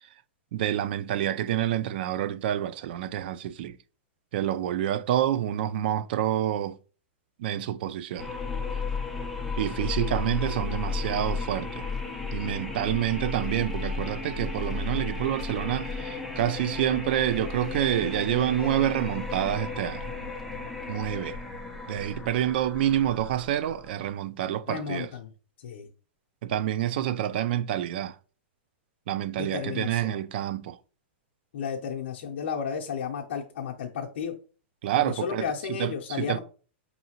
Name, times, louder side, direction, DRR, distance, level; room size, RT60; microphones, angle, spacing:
voice 1, 0.5-3.8 4.3-6.8 7.4-8.3 9.6-11.9 12.3-20.1 20.9-21.4 21.9-25.1 26.4-28.2 29.1-30.8 34.8-35.4 35.7-36.4, right 11 dB, 55° right, 0.3 m, -28 dB
sound 1, 8.2-24.1, left 4 dB, ahead, 0.6 m, -34 dB
voice 2, 24.7-25.3 25.6-25.9 29.4-30.2 31.5-34.3 35.1-36.4, left 7 dB, 70° left, 0.6 m, -33 dB
5.7 x 2.7 x 2.9 m
supercardioid pair, 155°, 6 cm